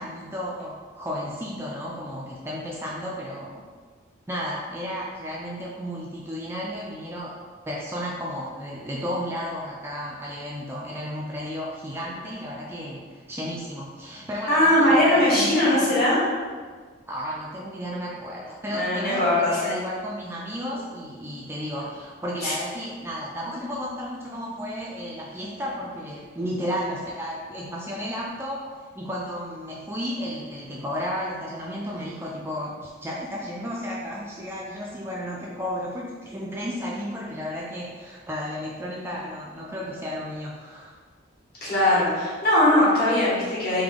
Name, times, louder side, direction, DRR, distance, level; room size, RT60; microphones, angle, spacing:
voice 1, 0.0-3.6 4.3-15.9 17.0-28.7 28.9-41.0, equal, 10° right, -4 dB, 0.4 m, -33 dB
voice 2, 14.5-16.2 18.7-19.8 22.4-22.6 41.6-43.8, left 1 dB, 55° left, -8 dB, 1.4 m, -20 dB
3.4 x 2.8 x 3.7 m, 1.6 s
head